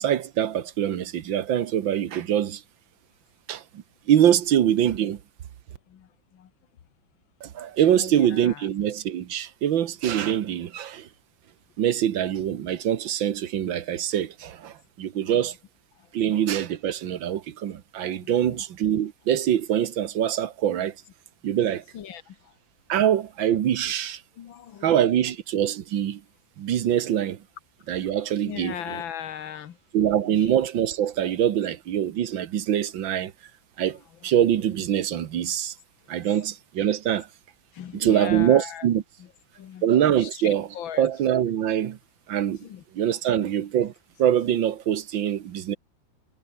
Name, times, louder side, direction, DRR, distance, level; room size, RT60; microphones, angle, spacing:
voice 1, 0.0-2.6 3.5-5.2 7.4-11.1 11.8-15.6 16.1-20.9 21.4-21.8 22.9-24.2 24.8-26.2 26.6-27.4 27.9-29.0 29.9-33.3 33.8-35.8 36.1-37.3 37.9-39.0 39.8-40.7 41.0-42.0 42.3-42.7 42.9-43.9 44.2-45.8, right 10 dB, 80° right, 1.9 m, -24 dB
voice 2, 5.9-6.5 7.9-8.7 15.1-15.5 16.0-16.1 18.0-18.6 21.9-22.5 24.4-25.2 28.5-29.8 30.2-30.5 34.2-34.3 37.7-38.9 39.2-39.3 39.6-39.9 40.2-41.1 42.6-42.8 43.4-43.5, left 9 dB, 90° left, 2.1 m, -39 dB
omnidirectional pair, 2.1 m